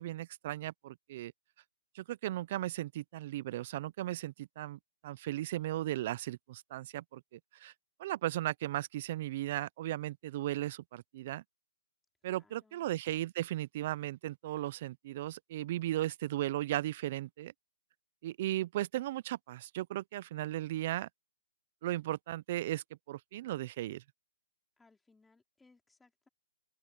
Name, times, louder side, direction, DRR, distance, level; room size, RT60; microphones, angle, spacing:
voice 1, 0.0-1.3 1.9-7.7 8.0-11.4 12.2-17.5 18.2-21.1 21.8-24.0, right 14 dB, 35° right, 0.4 m, -36 dB
voice 2, 12.2-12.9 24.8-26.3, left 3 dB, 5° left, 3.3 m, -67 dB
open air
hypercardioid pair, 170°, 0 cm